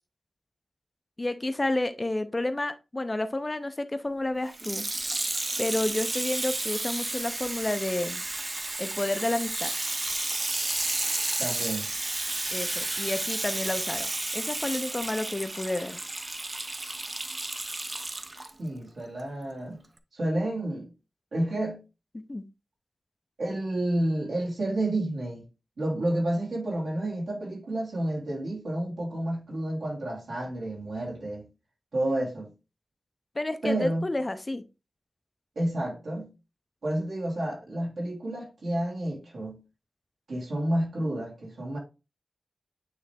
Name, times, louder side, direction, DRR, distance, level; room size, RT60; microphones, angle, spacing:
voice 1, 1.2-4.9 5.6-8.2 8.8-9.7 12.5-16.0 22.1-22.4 33.4-34.6, left 2 dB, 25° left, 0.5 m, -30 dB
Water tap faucet / Sink (filling or washing), 4.5-18.5 19.2-19.3, right 2 dB, 30° right, 0.6 m, -32 dB
voice 2, 11.4-11.9 18.6-19.8 20.1-20.9 21.3-21.8 23.4-25.4 25.8-31.5 31.9-32.5 33.6-34.1 35.5-36.3 36.8-39.6 40.3-41.8, right 1 dB, 80° right, 3.0 m, -30 dB
8.9 x 3.3 x 3.4 m
wide cardioid pair, 100°, 0 cm